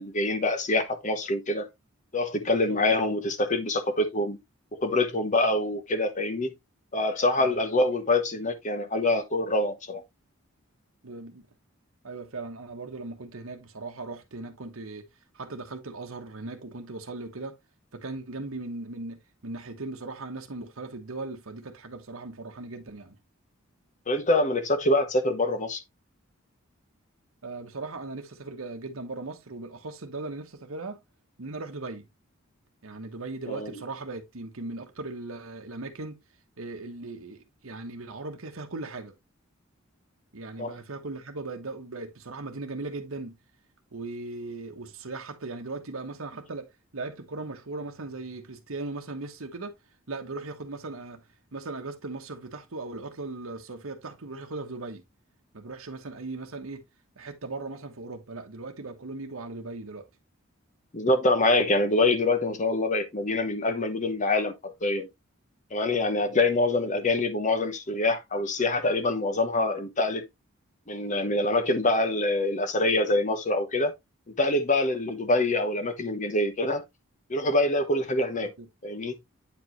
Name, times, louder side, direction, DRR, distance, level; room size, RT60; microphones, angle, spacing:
voice 1, 0.0-1.7 2.1-4.4 4.8-6.5 6.9-10.0 24.1-25.8 33.5-33.7 40.6-40.8 60.9-65.1 65.7-70.2 70.9-73.9 74.4-76.8 77.3-78.5 78.8-79.1, left 2 dB, 35° left, 1.0 m, -25 dB
voice 2, 2.4-3.1 7.4-7.6 11.0-11.5 12.0-15.0 15.3-17.6 17.9-23.2 27.4-31.0 31.4-32.0 32.8-36.2 36.6-39.1 40.3-43.4 43.9-49.7 50.1-51.2 51.5-55.0 55.5-56.8 57.2-60.1 78.4-78.7, right 3 dB, 80° right, 1.1 m, -38 dB
8.8 x 4.9 x 3.1 m
head